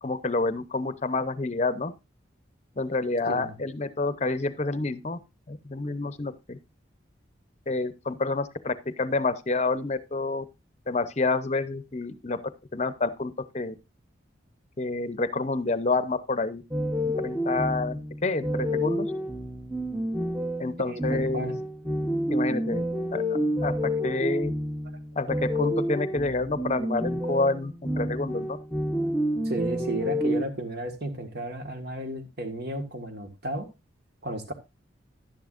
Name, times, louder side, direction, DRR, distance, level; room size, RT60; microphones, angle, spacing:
voice 1, 0.0-1.9 2.8-5.2 5.5-6.6 7.7-10.4 10.9-12.4 12.7-13.7 14.8-16.6 17.0-19.1 20.6-21.5 22.3-22.8 23.1-23.7 24.0-24.5 25.2-28.6, left 3 dB, 35° left, 14 dB, 0.7 m, -28 dB
sound 1, 16.7-30.4, equal, 5° right, 0.9 m, -29 dB
voice 2, 20.9-21.5 29.0-29.1 29.4-33.7 34.2-34.5, right 1 dB, 55° right, 6 dB, 1.7 m, -33 dB
11.0 x 10.5 x 2.5 m, 0.25 s
head